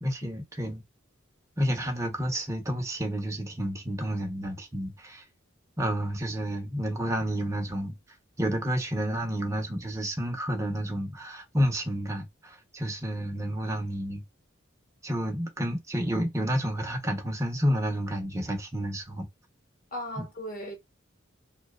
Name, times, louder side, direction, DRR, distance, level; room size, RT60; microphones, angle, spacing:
voice 1, 0.0-0.8 1.6-5.2 5.8-7.9 8.4-14.2 15.0-19.3 20.2-20.3, equal, 15° right, 0.6 m, -30 dB
voice 2, 19.9-20.8, equal, 45° left, 0.9 m, -37 dB
2.7 x 2.1 x 2.2 m
head